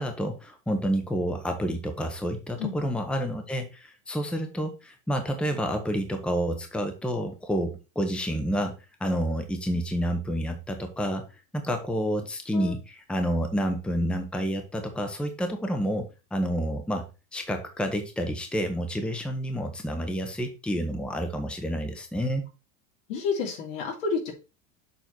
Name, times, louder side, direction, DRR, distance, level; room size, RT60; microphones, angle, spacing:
voice 1, 0.0-8.7 9.0-11.2 11.5-17.1 17.3-22.4, equal, 5° left, 6 dB, 0.9 m, -29 dB
voice 2, 23.1-24.3, left 5 dB, 75° left, 1 dB, 3.0 m, -29 dB
6.9 x 4.4 x 4.5 m, 0.29 s
supercardioid pair, 140°, 38 cm